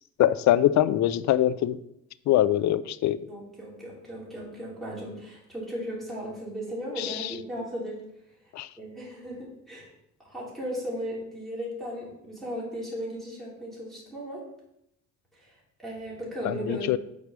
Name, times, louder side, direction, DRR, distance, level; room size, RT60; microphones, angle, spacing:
voice 1, 0.2-1.8 2.3-3.2 7.0-7.3 8.5-8.7 16.4-17.0, left 12 dB, 65° left, 16 dB, 0.5 m, -23 dB
voice 2, 3.3-8.0 8.8-9.9 10.2-14.5 15.3-15.5 15.8-17.0, equal, ahead, -7 dB, 3.2 m, -36 dB
6.0 x 4.8 x 6.7 m, 0.79 s
cardioid pair, 90°, 30 cm